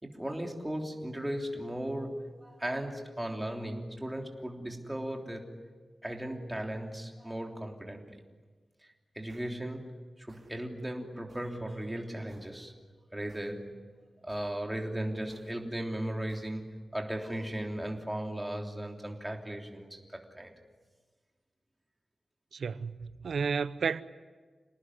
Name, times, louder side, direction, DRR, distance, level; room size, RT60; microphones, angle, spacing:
voice 1, 0.0-5.5 6.0-8.2 8.8-12.7 13.1-13.8 14.2-20.5, right 1 dB, 10° right, 3.3 m, -37 dB
sound 1, 9.3-9.5 10.3-10.5 11.3-11.5 12.3-12.5 13.3-13.5 14.3-14.5 15.3-15.5 16.3-16.5, right 3 dB, 35° right, 4.6 m, -60 dB
voice 2, 22.5-24.0, right 5 dB, 85° right, 0.8 m, -32 dB
28.5 x 19.0 x 9.9 m
wide cardioid pair, 135°, 0 cm